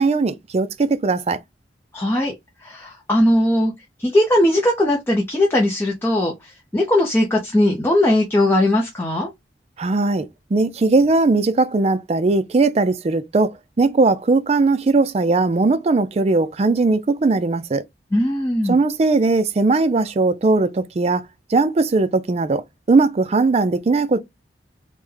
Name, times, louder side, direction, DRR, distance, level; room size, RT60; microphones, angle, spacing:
voice 1, 0.0-1.4 9.8-10.3 10.5-17.8 18.7-21.2 21.5-22.6 22.9-24.2, right 3 dB, 35° right, 0.4 m, -19 dB
voice 2, 1.9-2.3 2.6-3.7 4.0-9.3 18.1-18.8, left 1 dB, 15° left, 0.5 m, -19 dB
3.4 x 2.1 x 3.2 m
head